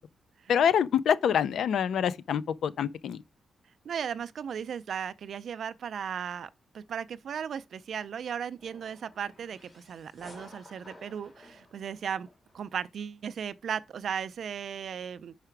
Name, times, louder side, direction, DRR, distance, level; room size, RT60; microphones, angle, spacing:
voice 1, 0.5-3.2, left 8 dB, 70° left, 0.4 m, -26 dB
voice 2, 3.8-6.5 6.7-12.3 12.5-15.4, right 7 dB, 55° right, 0.4 m, -36 dB
sound 1, 8.6-12.6, left 1 dB, 20° left, 2.3 m, -53 dB
5.8 x 4.9 x 4.5 m
wide cardioid pair, 175°, 0 cm